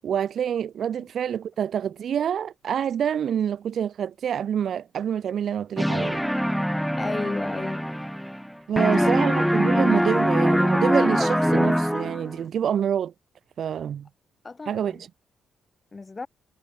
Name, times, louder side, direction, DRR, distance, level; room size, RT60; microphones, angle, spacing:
voice 1, 0.0-6.2 8.7-13.1 13.6-14.1 14.7-15.1, right 9 dB, 60° right, 0.6 m, -27 dB
sound 1, 5.8-8.5 8.8-12.4, equal, ahead, 0.6 m, -23 dB
voice 2, 7.0-7.9 8.7-9.2 14.4-15.0 15.9-16.3, left 3 dB, 25° left, 1.9 m, -33 dB
cardioid pair, 95°, 0 cm